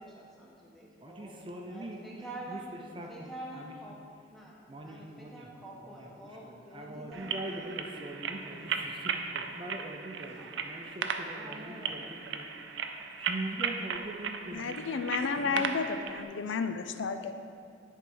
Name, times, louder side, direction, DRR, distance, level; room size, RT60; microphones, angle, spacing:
voice 1, 0.0-1.3 1.7-2.7 3.1-4.0 4.3-7.4 10.3-10.5 11.3-12.1, right 1 dB, ahead, -4 dB, 1.2 m, -47 dB
voice 2, 1.0-3.8 4.7-14.9 15.4-15.9, right 1 dB, 25° right, 2 dB, 0.6 m, -43 dB
sound 1, 7.1-16.2, right 6 dB, 70° right, 0.5 m, -37 dB
voice 3, 14.5-17.3, left 5 dB, 80° left, 8 dB, 0.5 m, -32 dB
10.0 x 4.6 x 5.5 m, 2.4 s
head